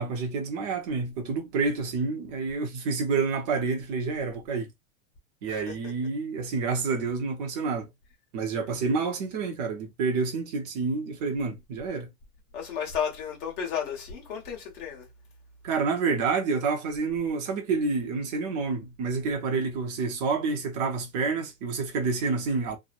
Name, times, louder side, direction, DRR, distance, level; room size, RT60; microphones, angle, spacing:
voice 1, 0.0-4.7 5.4-7.9 8.3-12.1 15.6-22.8, right 4 dB, 30° right, 0.6 m, -28 dB
voice 2, 12.5-15.1, left 7 dB, 35° left, 1.3 m, -33 dB
3.0 x 2.1 x 2.4 m
supercardioid pair, 165°, 44 cm